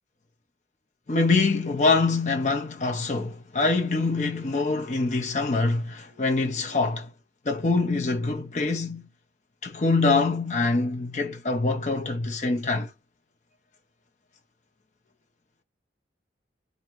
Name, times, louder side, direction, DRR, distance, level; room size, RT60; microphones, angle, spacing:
voice 1, 1.1-7.1 7.5-9.1 9.6-12.9, left 3 dB, 40° left, 0.6 m, -24 dB
3.7 x 2.7 x 4.4 m
head